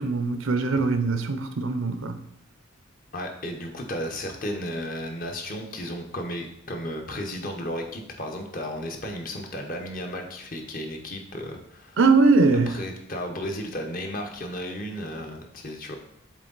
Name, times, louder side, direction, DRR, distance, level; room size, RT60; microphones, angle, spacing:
voice 1, 0.0-2.2 12.0-12.7, right 3 dB, 70° right, 9 dB, 0.6 m, -21 dB
voice 2, 3.1-12.0 12.7-16.0, equal, 45° left, 3 dB, 0.9 m, -34 dB
7.5 x 3.7 x 4.0 m, 0.78 s
head